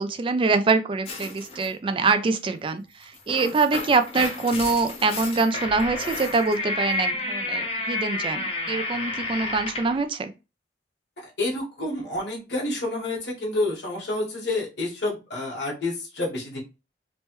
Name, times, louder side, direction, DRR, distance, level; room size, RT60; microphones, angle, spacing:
voice 1, 0.0-10.3, right 4 dB, 30° right, 0.3 m, -24 dB
sound 1, 1.1-1.7 3.0-10.0, left 2 dB, 35° left, 0.7 m, -31 dB
voice 2, 11.2-16.6, left 2 dB, 75° left, 1.3 m, -29 dB
3.0 x 2.2 x 3.0 m
head